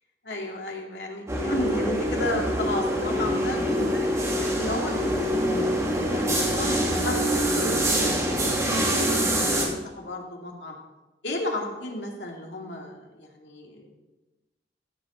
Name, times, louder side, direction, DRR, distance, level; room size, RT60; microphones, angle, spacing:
voice 1, 0.2-4.9 5.3-5.6 6.1-8.3 8.6-10.7 11.2-13.9, left 1 dB, 80° left, 0 dB, 2.5 m, -33 dB
sound 1, 1.3-9.6, equal, 20° right, 2.8 m, -25 dB
16.0 x 7.6 x 4.3 m, 1.1 s
head